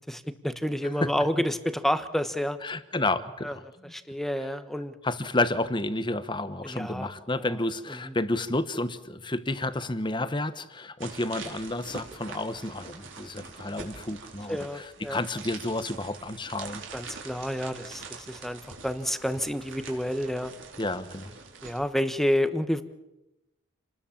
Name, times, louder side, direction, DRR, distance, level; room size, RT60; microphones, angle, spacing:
voice 1, 0.1-2.6 3.4-3.5 3.9-5.0 6.6-7.1 7.4-7.6 7.9-8.1 14.5-15.2 16.9-20.5 21.6-22.8, equal, ahead, 10 dB, 1.1 m, -29 dB
voice 2, 2.6-3.9 5.0-16.8 20.8-21.3, left 2 dB, 20° left, 12 dB, 1.1 m, -31 dB
sound 1, 11.0-21.8, right 4 dB, 65° right, 4.4 m, -44 dB
28.5 x 20.0 x 7.3 m, 0.96 s
head